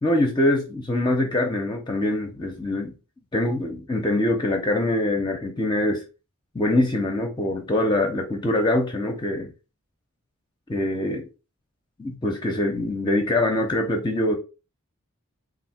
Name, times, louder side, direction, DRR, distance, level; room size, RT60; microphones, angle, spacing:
voice 1, 0.0-2.9 3.3-6.0 6.5-9.5 10.7-11.2 12.0-14.4, left 1 dB, 20° left, 0.6 m, -24 dB
3.5 x 2.6 x 4.2 m
head